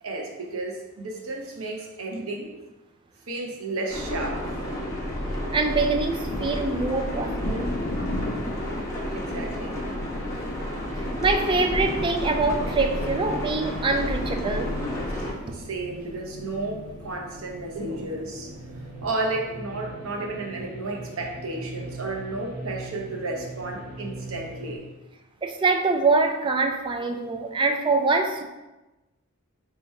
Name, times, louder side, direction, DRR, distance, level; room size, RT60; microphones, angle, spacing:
voice 1, 0.0-2.6 3.3-4.9 5.3-5.4 9.1-9.8 10.4-10.5 15.1-18.5 19.0-24.8, right 2 dB, 90° right, 1 dB, 0.8 m, -33 dB
sound 1, 3.9-15.3, left 1 dB, 15° left, 0.9 m, -31 dB
voice 2, 5.5-7.7 11.2-14.7 25.4-28.4, right 3 dB, 25° right, 5 dB, 0.3 m, -24 dB
Thunder, 5.8-19.0, left 1 dB, 35° left, 0.5 m, -37 dB
sound 2, 12.6-24.8, right 1 dB, 45° right, 0.9 m, -41 dB
3.4 x 2.9 x 4.4 m, 1.1 s
head